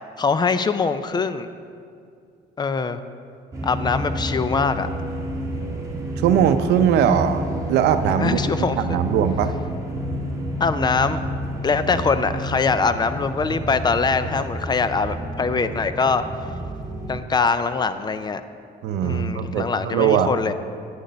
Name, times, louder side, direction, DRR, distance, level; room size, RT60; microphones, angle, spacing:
voice 1, 0.2-1.5 2.6-3.0 3.6-4.9 8.2-9.0 10.6-11.2 11.6-16.2 17.1-18.4 19.0-20.5, left 4 dB, 25° left, 12 dB, 0.4 m, -23 dB
sound 1, 3.5-17.2, equal, 20° right, 2.0 m, -30 dB
voice 2, 6.2-9.5 18.8-20.3, right 8 dB, 80° right, 10 dB, 0.6 m, -20 dB
9.4 x 6.4 x 6.7 m, 2.3 s
cardioid pair, 110°, 17 cm